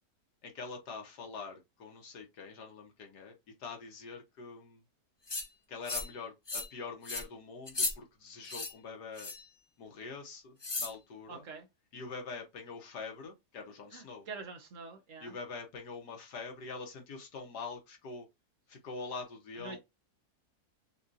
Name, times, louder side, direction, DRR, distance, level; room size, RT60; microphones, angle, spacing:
voice 1, 0.4-4.9 5.7-9.3 9.8-11.4 11.9-14.3 15.2-18.3 18.7-19.8, left 4 dB, 85° left, 1.8 m, -44 dB
sound 1, 5.3-5.5 5.8-6.2 6.5-6.7 7.0-7.2 7.7-7.9 8.4-8.7 9.2-9.5 10.6-10.9, left 3 dB, 35° left, 0.4 m, -35 dB
voice 2, 11.3-11.7 13.9-15.3 19.6-19.8, right 4 dB, 60° right, 1.1 m, -45 dB
6.4 x 2.4 x 2.7 m
omnidirectional pair, 1.7 m